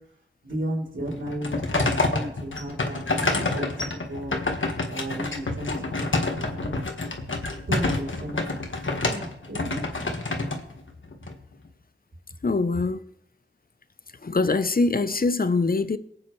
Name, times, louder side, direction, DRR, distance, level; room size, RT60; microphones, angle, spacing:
voice 1, 0.4-3.7 3.9-4.4 4.9-6.8 7.7-10.5, right 1 dB, 70° right, 3.4 m, -34 dB
sound 1, 1.1-11.3, left 2 dB, 70° left, 1.6 m, -28 dB
voice 2, 12.4-13.0 14.2-16.0, left 3 dB, 45° left, 0.7 m, -23 dB
23.0 x 8.7 x 3.2 m
wide cardioid pair, 55°, 21 cm